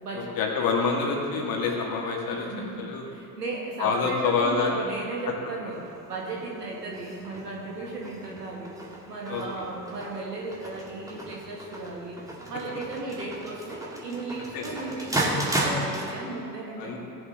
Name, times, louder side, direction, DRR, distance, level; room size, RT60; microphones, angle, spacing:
voice 1, 0.1-2.5 2.8-3.0 3.8-4.7 9.3-9.4 14.5-14.6 16.8-17.0, left 5 dB, 45° left, 0 dB, 2.1 m, -26 dB
voice 2, 2.3-2.8 3.1-8.7 9.1-12.2 12.5-16.9, right 3 dB, 80° right, -2 dB, 1.8 m, -35 dB
sound 1, 5.7-16.1, right 1 dB, 5° right, 1.9 m, -35 dB
18.0 x 7.2 x 3.6 m, 2.8 s
figure-of-eight pair, 60°, 47 cm